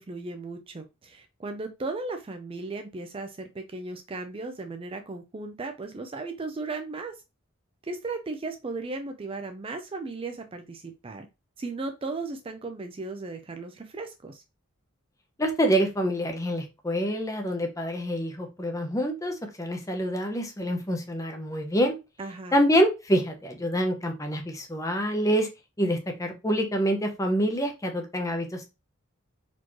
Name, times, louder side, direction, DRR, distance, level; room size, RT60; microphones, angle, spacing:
voice 1, 0.0-7.2 7.8-11.3 11.6-14.4 22.2-22.6, right 3 dB, 25° right, 6 dB, 0.4 m, -36 dB
voice 2, 15.4-22.0 22.5-25.5 25.8-28.6, equal, 15° left, 4 dB, 0.7 m, -26 dB
4.2 x 3.0 x 2.9 m, 0.25 s
head